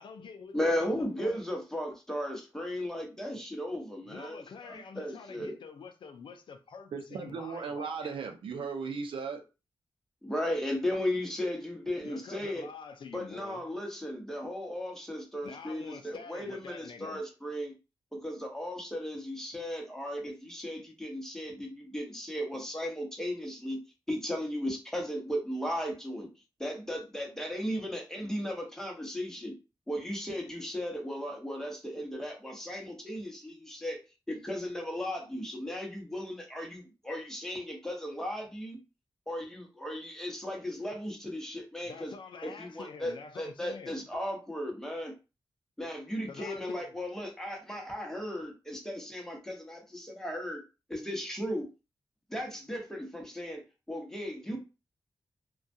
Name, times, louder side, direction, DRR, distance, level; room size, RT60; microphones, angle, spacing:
voice 1, 0.0-1.4 4.0-8.2 12.0-13.6 15.4-17.2 41.8-44.1 46.3-46.9, left 5 dB, 70° left, 0.4 m, -46 dB
voice 2, 0.5-5.5 10.2-12.7 13.1-17.7 18.1-23.8 24.1-26.3 26.6-29.5 29.9-34.0 34.3-38.8 39.3-42.1 42.4-45.1 45.8-50.6 50.9-51.7 52.3-54.6, equal, 5° left, 1.0 m, -36 dB
voice 3, 6.9-9.4 54.5-54.6, right 5 dB, 80° right, 0.5 m, -36 dB
2.3 x 2.3 x 2.6 m
cardioid pair, 65°, 9 cm